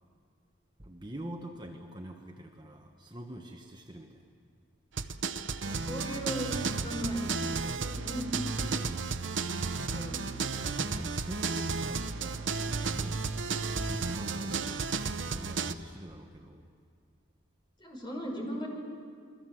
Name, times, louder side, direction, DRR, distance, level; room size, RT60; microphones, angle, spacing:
voice 1, 0.8-4.3 8.6-9.2 10.5-12.5 12.9-13.2 13.7-16.7, right 1 dB, 20° right, 2 dB, 1.3 m, -45 dB
sound 1, 5.0-15.7, right 4 dB, 65° right, 0.9 m, -33 dB
voice 2, 5.6-6.5 6.8-8.3 9.9-10.3 17.8-18.7, equal, 25° left, 0 dB, 5.4 m, -37 dB
29.5 x 22.0 x 7.7 m, 2.2 s
head